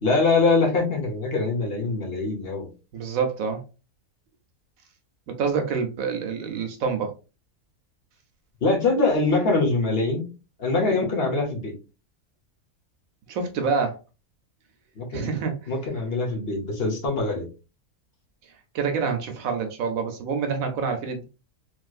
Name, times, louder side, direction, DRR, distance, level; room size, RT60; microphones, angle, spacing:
voice 1, 0.0-2.7 8.6-10.3 10.6-11.7 14.9-15.3 15.7-17.5, left 3 dB, 45° left, -1 dB, 1.2 m, -23 dB
voice 2, 2.9-3.6 5.3-7.1 13.3-14.0 15.1-15.6 18.7-21.2, right 5 dB, 70° right, 6 dB, 1.0 m, -27 dB
3.2 x 2.9 x 2.4 m, 0.32 s
omnidirectional pair, 1.5 m